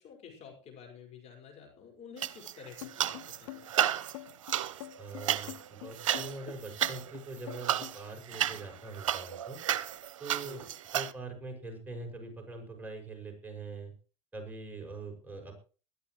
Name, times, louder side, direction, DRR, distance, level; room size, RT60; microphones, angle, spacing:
voice 1, 0.0-3.7 10.4-10.7, left 7 dB, 40° left, 2 dB, 5.3 m, -51 dB
pasos subiendo escaleras, 2.2-3.4 3.7-11.1, right 11 dB, 75° right, 0.8 m, -33 dB
sound 1, 2.8-8.0, left 19 dB, 60° left, 0.7 m, -45 dB
voice 2, 5.0-9.6 10.2-10.7 10.9-13.9 14.3-15.5, right 3 dB, 10° right, 1 dB, 6.5 m, -43 dB
20.5 x 13.0 x 3.2 m, 0.36 s
hypercardioid pair, 85°, 17 cm